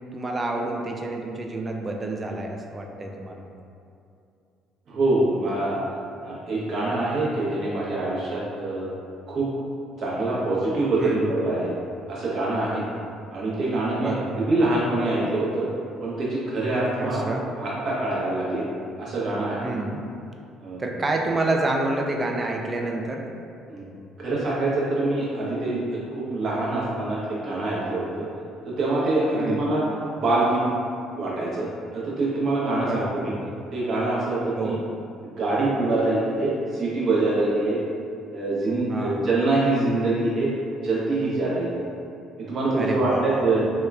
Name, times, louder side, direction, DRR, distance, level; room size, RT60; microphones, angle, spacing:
voice 1, 0.1-3.4 11.0-11.3 14.0-14.4 17.0-17.5 19.6-20.0 20.8-23.3 29.3-29.7 32.8-33.2 34.6-34.9 38.9-39.3 42.8-43.5, right 2 dB, 30° right, 1 dB, 0.3 m, -28 dB
voice 2, 4.9-5.8 6.2-8.9 9.3-9.5 10.0-11.7 12.1-12.9 13.3-15.7 16.0-17.2 17.6-18.6 19.0-19.7 20.6-20.8 23.7-23.9 24.2-28.3 28.6-29.9 30.2-30.6 31.2-31.7 31.9-33.3 33.7-34.7 35.2-37.8 38.3-40.5 40.8-41.7 42.4-43.6, right 2 dB, 55° right, -6 dB, 0.8 m, -25 dB
2.9 x 2.3 x 2.3 m, 2.5 s
hypercardioid pair, 55°, 0 cm